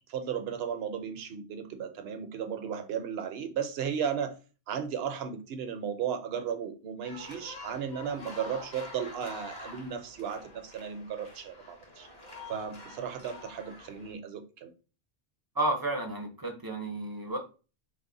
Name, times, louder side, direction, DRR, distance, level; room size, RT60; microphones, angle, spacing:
voice 1, 0.1-4.4 4.7-12.1 12.5-14.7, right 7 dB, 70° right, 0.8 m, -35 dB
sound 1, 7.0-14.1, left 2 dB, 45° left, 1.1 m, -47 dB
voice 2, 15.6-17.4, right 2 dB, 30° right, 0.5 m, -31 dB
3.4 x 2.1 x 3.8 m
omnidirectional pair, 1.1 m